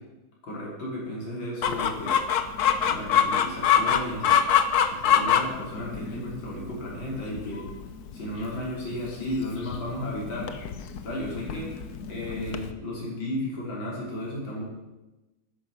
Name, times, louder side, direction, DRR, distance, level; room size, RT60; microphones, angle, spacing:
voice 1, 0.4-2.2 2.9-4.4 4.9-7.6 8.1-10.5 11.0-11.8 12.1-14.6, left 1 dB, 80° left, -4 dB, 4.2 m, -34 dB
Chicken rooster, 1.6-12.7, left 8 dB, 60° left, 1.3 m, -26 dB
11.0 x 10.0 x 7.3 m, 1.1 s
omnidirectional pair, 2.1 m